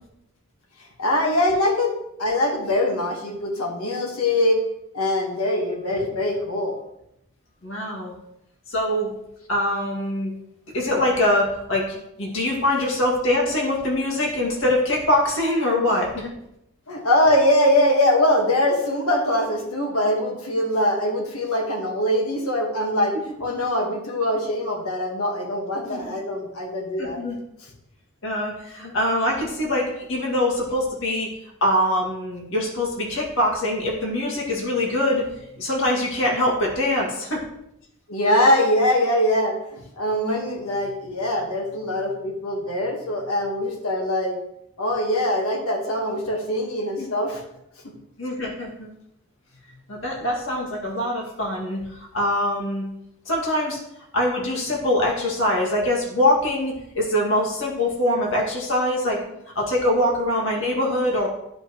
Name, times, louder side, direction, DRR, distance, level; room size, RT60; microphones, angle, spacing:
voice 1, 1.0-1.9 2.2-4.6 4.9-6.7 16.9-23.1 23.4-27.2 38.1-44.4 44.8-47.4, left 1 dB, 75° left, 1 dB, 1.6 m, -22 dB
voice 2, 7.6-8.1 8.7-9.1 9.5-10.3 10.7-16.3 25.9-26.0 27.0-27.4 28.2-31.3 31.6-35.3 35.6-37.4 47.0-47.1 48.2-48.9 49.9-52.8 53.3-53.8 54.1-59.2 59.6-61.3, left 1 dB, 60° left, -2 dB, 2.2 m, -23 dB
10.5 x 5.4 x 3.1 m, 0.81 s
head